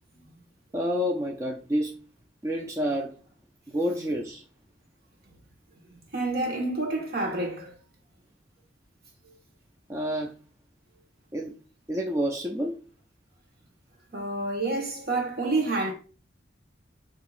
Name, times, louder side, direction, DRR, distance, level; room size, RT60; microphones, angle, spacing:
voice 1, 0.7-2.0 2.4-3.2 3.7-4.4 9.9-10.3 11.3-11.6 11.9-12.8, equal, 15° right, 0.4 m, -29 dB
voice 2, 6.1-7.7 14.1-15.9, right 2 dB, 50° right, 1.3 m, -28 dB
6.5 x 2.9 x 2.4 m
head